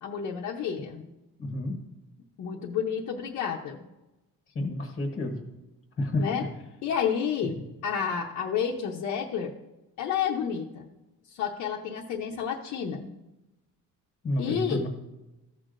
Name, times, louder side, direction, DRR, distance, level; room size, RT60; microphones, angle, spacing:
voice 1, 0.0-1.0 2.4-3.9 6.2-6.5 6.8-9.6 10.0-10.9 11.3-13.1 14.4-14.9, left 7 dB, 60° left, -1 dB, 0.8 m, -30 dB
voice 2, 1.4-1.8 4.5-5.4 6.0-6.2 14.2-14.9, left 2 dB, 30° left, 3 dB, 1.0 m, -29 dB
14.5 x 6.4 x 2.5 m, 1.0 s
cardioid pair, 165°, 33 cm